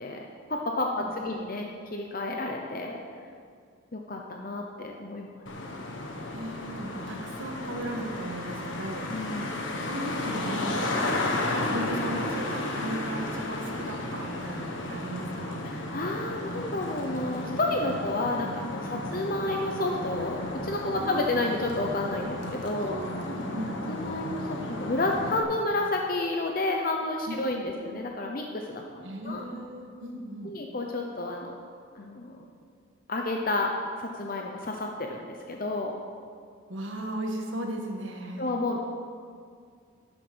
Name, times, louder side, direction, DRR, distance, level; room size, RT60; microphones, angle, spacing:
voice 1, 0.0-3.0 3.9-5.5 9.1-9.6 15.6-22.9 23.9-29.4 30.4-31.5 31.9-32.4 33.1-33.7 34.0-35.9 38.4-38.8, left 2 dB, 45° left, 1 dB, 0.8 m, -31 dB
voice 2, 1.0-1.5 6.3-9.1 9.8-10.9 11.6-15.7 18.9-19.1 20.9-21.5 22.8-23.7 27.3-28.0 29.0-30.5 36.7-38.5, right 1 dB, 75° right, 2 dB, 1.7 m, -36 dB
Traffic noise roadway noise, 5.5-25.4, left 1 dB, 70° left, 1.4 m, -33 dB
11.5 x 8.8 x 6.2 m, 2.2 s
head